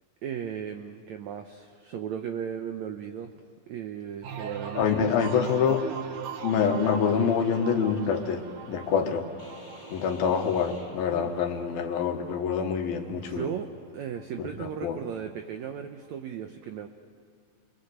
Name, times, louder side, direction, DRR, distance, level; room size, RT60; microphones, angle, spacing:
voice 1, 0.2-3.3 3.7-5.3 11.1-11.3 13.2-16.9, right 8 dB, 85° right, 6 dB, 1.6 m, -36 dB
sound 1, 4.2-13.8 14.2-14.7, right 7 dB, 65° right, 2.7 m, -41 dB
voice 2, 4.8-5.8 6.4-8.4 8.7-9.3 9.9-13.5 14.4-15.0, left 7 dB, 75° left, 5 dB, 3.2 m, -26 dB
sound 2, 9.4-12.0, left 1 dB, 10° left, 3.4 m, -48 dB
27.5 x 22.5 x 8.0 m, 2.2 s
omnidirectional pair, 4.4 m